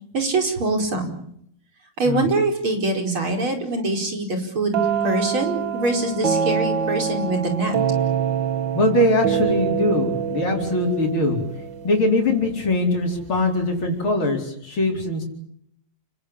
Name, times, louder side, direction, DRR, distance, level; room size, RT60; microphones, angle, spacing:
voice 1, 0.1-1.1 2.0-7.8, right 2 dB, 90° right, 4 dB, 5.8 m, -24 dB
sound 1, 4.7-12.5, right 7 dB, 65° right, 2.3 m, -25 dB
voice 2, 8.7-11.4 11.8-15.2, left 2 dB, 80° left, 1 dB, 5.3 m, -21 dB
29.5 x 19.0 x 8.8 m, 0.71 s
omnidirectional pair, 2.2 m